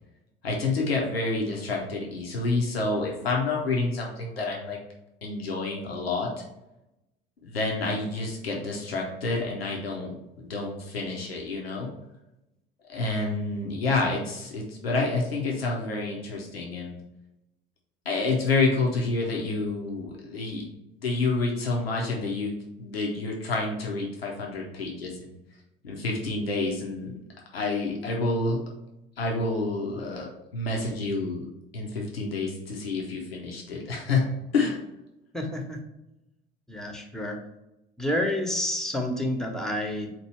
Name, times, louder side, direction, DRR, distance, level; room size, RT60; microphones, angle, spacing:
voice 1, 0.4-4.8 5.2-6.3 7.4-11.9 12.9-17.0 18.0-20.6 21.0-25.3 25.8-27.1 27.5-28.6 29.2-31.5 31.7-34.3 34.5-34.8, left 3 dB, 85° left, -1 dB, 0.8 m, -28 dB
voice 2, 35.3-35.8 36.7-37.4 38.0-40.1, left 1 dB, ahead, 3 dB, 0.8 m, -29 dB
4.4 x 2.6 x 4.3 m, 0.92 s
figure-of-eight pair, 60°, 30 cm